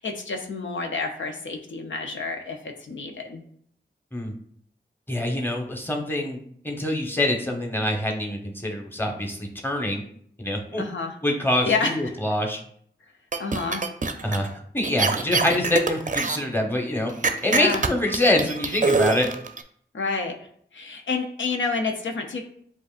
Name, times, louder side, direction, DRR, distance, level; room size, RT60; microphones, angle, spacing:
voice 1, 0.0-3.4 10.8-11.1 11.6-12.1 13.4-13.8 17.5-17.8 19.9-20.4 20.7-22.4, left 4 dB, 85° left, 4 dB, 0.5 m, -29 dB
voice 2, 5.1-6.4 6.6-10.0 10.4-10.8 11.2-12.6 14.2-14.5 14.7-17.1 17.4-19.3, left 1 dB, 10° left, 2 dB, 0.9 m, -25 dB
sound 1, 13.3-14.5 14.8-16.4 17.2-19.6, right 3 dB, 40° right, 0.5 m, -24 dB
7.3 x 2.5 x 2.4 m, 0.63 s
cardioid pair, 40°, 19 cm